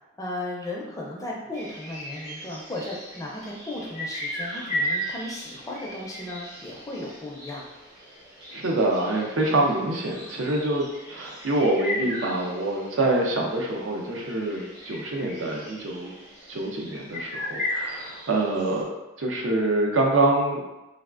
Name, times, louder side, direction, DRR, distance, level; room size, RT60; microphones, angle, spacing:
voice 1, 0.2-7.7, left 1 dB, 15° left, -3 dB, 0.4 m, -35 dB
sound 1, 1.5-18.8, left 1 dB, 60° right, 1.2 m, -36 dB
voice 2, 8.5-16.1 16.5-18.9 19.2-20.6, right 2 dB, 85° right, 0 dB, 0.6 m, -25 dB
3.3 x 2.3 x 2.4 m, 1.0 s
head